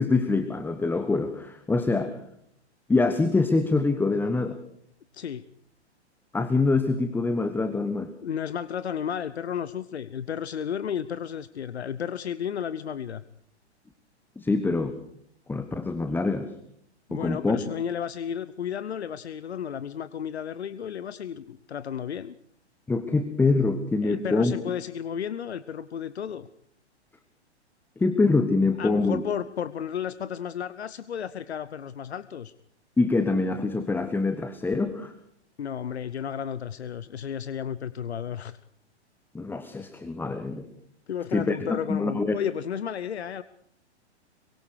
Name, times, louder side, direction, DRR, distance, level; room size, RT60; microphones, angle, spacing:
voice 1, 0.0-2.2 2.9-4.6 6.3-8.1 14.4-15.0 15.5-16.5 17.1-17.6 22.9-24.5 28.0-29.2 33.0-35.1 39.3-40.7 41.3-42.4, left 3 dB, 5° left, 10 dB, 1.3 m, -25 dB
voice 2, 8.2-13.2 17.1-22.3 24.0-26.5 28.8-32.5 35.6-38.6 41.1-43.4, left 8 dB, 65° left, 16 dB, 1.0 m, -33 dB
26.0 x 24.0 x 4.8 m, 0.68 s
figure-of-eight pair, 110°, 34 cm